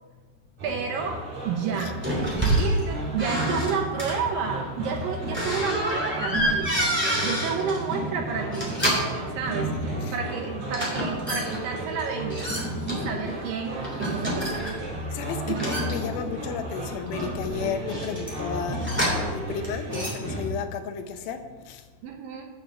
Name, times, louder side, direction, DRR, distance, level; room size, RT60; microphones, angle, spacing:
sound 1, 0.6-20.5, right 1 dB, 45° right, 3.3 m, -33 dB
voice 1, 0.6-2.0 2.4-8.8 9.4-9.7 10.1-12.6 12.8-14.8 15.5-15.7 22.0-22.5, right 6 dB, 75° right, 3 dB, 2.1 m, -31 dB
sound 2, 2.0-2.8 3.2-4.2 5.3-7.8 8.4-9.2 10.7-11.6 12.3-13.4 13.8-14.9 15.5-16.5 17.1-19.4 19.6-20.1, right 1 dB, 5° right, 1.7 m, -28 dB
voice 2, 15.1-21.8, left 7 dB, 75° left, 7 dB, 2.4 m, -33 dB
8.6 x 6.6 x 7.2 m, 1.2 s
omnidirectional pair, 4.9 m